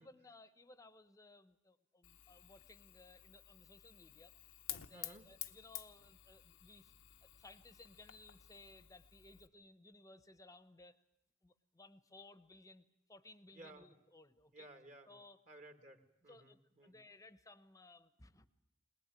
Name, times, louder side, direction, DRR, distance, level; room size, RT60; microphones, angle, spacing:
voice 1, 0.0-4.3 4.7-6.9 7.2-11.0 11.4-14.7 15.1-15.4 16.3-18.5, left 2 dB, 15° left, 13 dB, 1.0 m, -60 dB
Fire, 2.0-9.5, left 13 dB, 80° left, 1.0 m, -52 dB
voice 2, 4.9-5.3 13.5-13.9 14.5-15.1 15.5-17.0, right 2 dB, 35° right, 6 dB, 1.8 m, -57 dB
22.5 x 20.0 x 9.3 m, 0.87 s
head